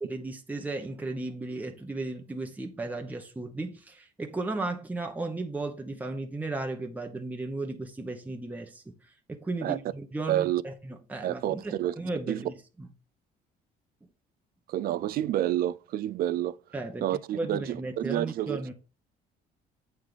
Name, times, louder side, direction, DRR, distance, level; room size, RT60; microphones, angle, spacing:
voice 1, 0.0-12.9 16.7-17.1 17.3-18.7, right 2 dB, 10° right, 1.0 m, -35 dB
voice 2, 10.3-10.6 11.2-11.9 12.3-12.4 14.7-16.6 17.0-18.7, right 12 dB, 60° right, 0.4 m, -29 dB
7.9 x 3.8 x 5.0 m
cardioid pair, 110°, 17 cm